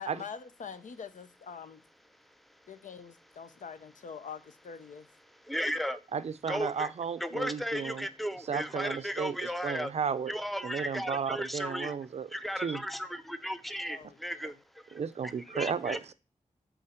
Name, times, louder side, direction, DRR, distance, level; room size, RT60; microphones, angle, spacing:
voice 1, 0.0-1.8 2.7-5.1 13.9-14.6, left 6 dB, 80° left, 0.6 m, -45 dB
voice 2, 5.5-6.0 6.5-6.9 7.2-9.9 10.3-12.0 12.3-14.5 15.2-16.0, equal, ahead, 0.5 m, -35 dB
voice 3, 6.1-8.1 8.5-10.3 10.6-12.3 12.6-12.8 14.9-16.1, right 6 dB, 55° right, 0.4 m, -34 dB
7.8 x 4.1 x 4.3 m
wide cardioid pair, 165°, 13 cm